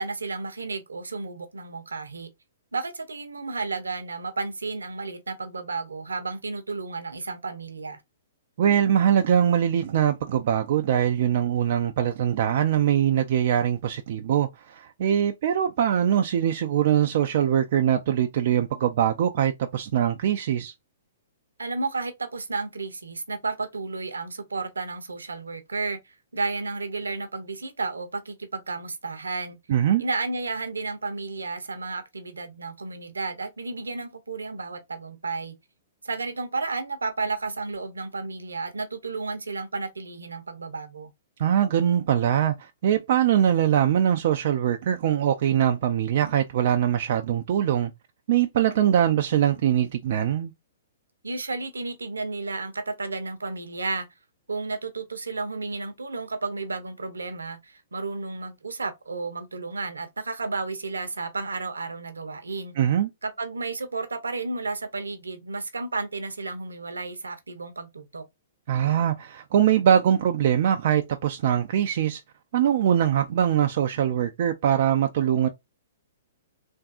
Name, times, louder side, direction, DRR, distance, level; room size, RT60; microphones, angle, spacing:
voice 1, 0.0-2.3 2.7-8.0 21.6-29.6 30.0-35.5 36.0-41.1 51.2-54.1 54.5-62.7 63.2-68.2, right 3 dB, 80° right, 0.7 m, -32 dB
voice 2, 8.6-20.7 29.7-30.0 41.4-47.9 48.3-50.5 62.8-63.1 68.7-72.2 72.5-75.5, right 9 dB, 50° right, 0.3 m, -22 dB
3.5 x 2.6 x 2.3 m
figure-of-eight pair, 115°, 0 cm